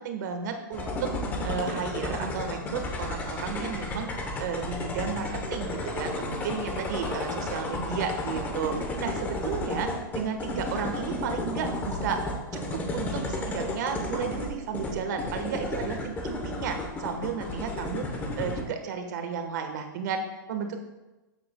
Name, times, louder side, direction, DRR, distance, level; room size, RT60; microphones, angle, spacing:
voice 1, 0.0-1.1 1.4-4.1 4.4-12.3 12.5-18.1 18.4-20.9, right 6 dB, 55° right, 5 dB, 1.4 m, -33 dB
sound 1, 0.7-18.6, left 2 dB, 15° left, 0.9 m, -33 dB
13.5 x 7.6 x 2.3 m, 1.1 s
supercardioid pair, 160°, 12 cm